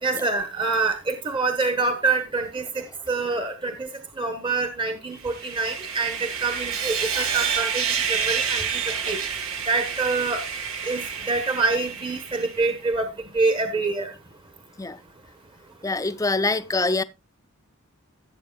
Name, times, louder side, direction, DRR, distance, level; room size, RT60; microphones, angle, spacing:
voice 1, 0.0-3.9 4.2-8.7 9.1-9.2 9.7-10.4 10.8-11.0 11.3-13.1 13.3-14.1, right 3 dB, 25° right, 1.1 m, -26 dB
Sawing, 5.2-12.6, right 7 dB, 75° right, 1.6 m, -29 dB
voice 2, 15.8-17.0, left 3 dB, 15° left, 0.5 m, -24 dB
16.0 x 8.2 x 2.4 m
head